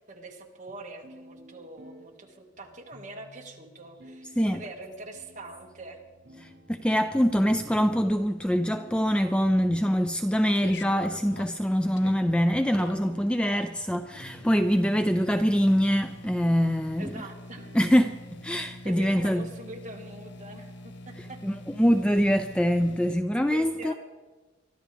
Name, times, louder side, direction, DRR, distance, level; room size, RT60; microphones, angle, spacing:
voice 1, 0.1-6.0 17.0-17.7 18.8-21.4 23.5-23.9, right 2 dB, 40° right, 1.8 m, -43 dB
sound 1, 0.7-18.7, equal, 70° right, 4.7 m, -54 dB
voice 2, 6.4-17.1 17.7-19.5 21.4-23.9, equal, 5° left, 0.3 m, -24 dB
sound 2, 10.1-23.2, left 1 dB, 65° left, 0.7 m, -45 dB
23.5 x 13.0 x 3.4 m
head